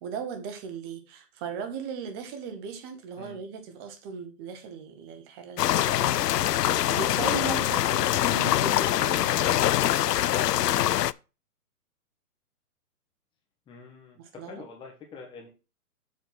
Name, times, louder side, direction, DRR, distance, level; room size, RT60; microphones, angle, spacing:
voice 1, 0.0-6.6 6.9-9.9 14.2-14.6, right 6 dB, 15° right, 0.9 m, -38 dB
sound 1, 5.6-11.1, left 13 dB, 90° left, 0.6 m, -24 dB
voice 2, 13.7-15.5, left 4 dB, 10° left, 1.6 m, -45 dB
7.5 x 4.5 x 6.1 m
hypercardioid pair, 160°, 47 cm